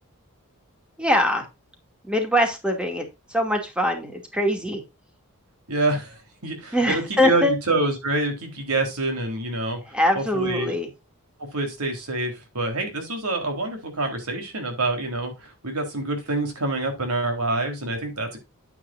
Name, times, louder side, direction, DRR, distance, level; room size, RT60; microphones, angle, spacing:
voice 1, 1.0-1.4 2.0-4.8 6.7-7.5 9.9-10.9, left 1 dB, 5° right, 3 dB, 2.5 m, -23 dB
voice 2, 5.7-10.8 11.4-18.4, right 2 dB, 85° right, 4 dB, 4.1 m, -27 dB
10.0 x 9.3 x 2.6 m, 0.25 s
head